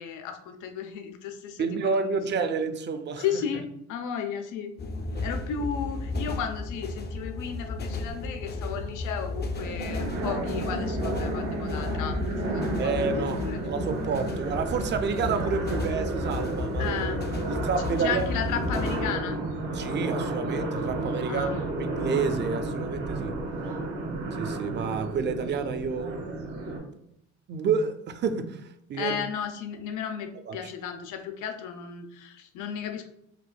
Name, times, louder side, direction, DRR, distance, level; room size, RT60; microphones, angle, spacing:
voice 1, 0.0-2.5 3.2-4.7 5.2-13.6 14.3-14.4 16.8-17.3 18.0-19.4 21.2-21.6 29.0-33.1, left 8 dB, 85° left, 6 dB, 0.5 m, -34 dB
voice 2, 1.6-3.2 5.1-5.3 12.8-17.0 17.5-18.3 19.7-21.5 21.8-23.3 24.4-27.0 27.5-28.6 28.9-29.2 30.5-30.7, right 5 dB, 40° right, 9 dB, 0.4 m, -29 dB
sound 1, 4.8-19.2, left 2 dB, 35° left, 0.4 m, -34 dB
sound 2, 9.5-26.8, right 2 dB, 75° right, 1.1 m, -32 dB
4.6 x 2.4 x 2.2 m, 0.76 s
cardioid pair, 90°, 30 cm